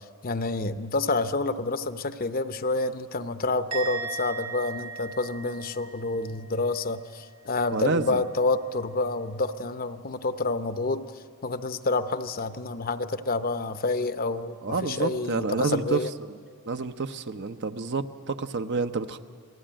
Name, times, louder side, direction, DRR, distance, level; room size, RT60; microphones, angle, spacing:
voice 1, 0.2-11.0 11.4-16.1, left 3 dB, 40° left, 11 dB, 0.8 m, -28 dB
Musical instrument, 3.7-7.1 7.4-7.8, right 5 dB, 70° right, 3.2 m, -38 dB
voice 2, 7.7-8.2 14.6-16.0 16.3-16.4 16.7-19.2, right 4 dB, 55° right, 9 dB, 0.8 m, -29 dB
27.0 x 19.0 x 9.0 m, 2.2 s
head